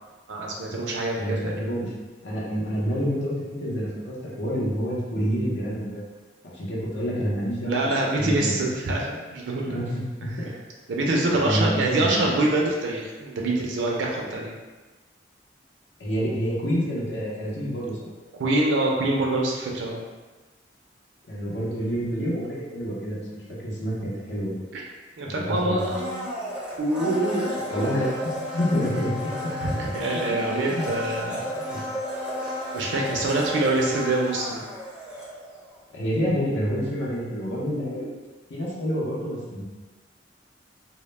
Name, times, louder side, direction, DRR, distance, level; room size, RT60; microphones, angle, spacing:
voice 1, 0.3-1.8 7.6-9.8 10.9-14.5 18.4-20.0 24.7-24.8 25.2-26.3 26.8-27.5 29.6-31.5 32.7-34.6, right 2 dB, 80° right, -2 dB, 0.4 m, -25 dB
voice 2, 1.2-1.9 2.2-6.0 6.4-7.8 8.2-8.6 9.6-10.5 11.4-12.4 16.0-18.1 21.3-24.6 25.2-25.9 27.7-29.3 30.3-30.9 31.5-31.8 35.9-38.1 38.5-39.6, equal, 75° left, -6 dB, 0.6 m, -28 dB
Domestic sounds home sounds, 25.8-35.7 36.0-36.1, left 1 dB, 5° right, 0.4 m, -33 dB
2.1 x 2.0 x 3.1 m, 1.2 s
head